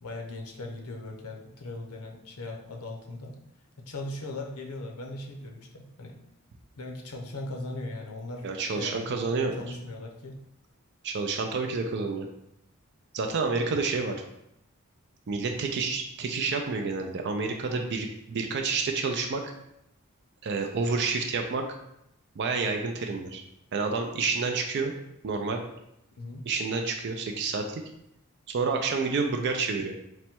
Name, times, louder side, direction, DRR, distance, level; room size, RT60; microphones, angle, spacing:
voice 1, 0.0-3.3 3.8-6.1 6.8-8.5 8.7-9.1 9.6-10.3 26.2-26.5, left 2 dB, 90° left, 1 dB, 0.8 m, -39 dB
voice 2, 8.4-9.5 11.0-12.3 13.1-14.2 15.3-19.5 20.4-21.7 22.4-23.4 23.7-24.9 25.2-25.6 26.5-27.8 28.5-29.9, right 4 dB, 50° right, 3 dB, 0.4 m, -29 dB
4.0 x 2.2 x 4.4 m, 0.81 s
head